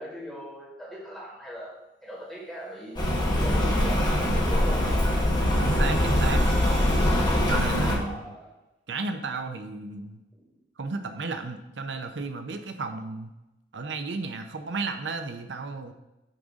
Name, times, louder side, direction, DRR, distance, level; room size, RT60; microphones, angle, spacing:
voice 1, 0.0-3.0 3.3-5.0 7.9-8.5 10.3-10.4, equal, ahead, -5 dB, 2.2 m, -39 dB
Rain, 3.0-8.0, left 1 dB, 25° left, 1.7 m, -23 dB
sound 1, 3.7-7.7, right 1 dB, 40° right, 3.0 m, -41 dB
voice 2, 5.6-6.4 7.5-8.2 8.9-10.2 10.8-13.3 13.7-15.9, right 3 dB, 75° right, 7 dB, 0.7 m, -33 dB
8.9 x 3.6 x 6.4 m, 0.95 s
head